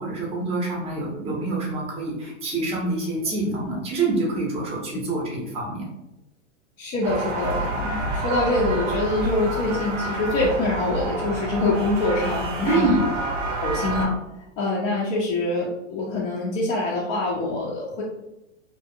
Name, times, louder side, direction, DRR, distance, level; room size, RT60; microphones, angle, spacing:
voice 1, 0.0-5.9 12.6-12.9, right 3 dB, 15° right, -2 dB, 0.6 m, -26 dB
voice 2, 6.8-13.0 13.6-14.1 14.6-18.0, left 2 dB, 25° left, -6 dB, 0.4 m, -25 dB
sound 1, 7.0-14.1, right 2 dB, 75° right, 0.8 m, -28 dB
2.5 x 2.3 x 2.6 m, 0.89 s
hypercardioid pair, 120°, 38 cm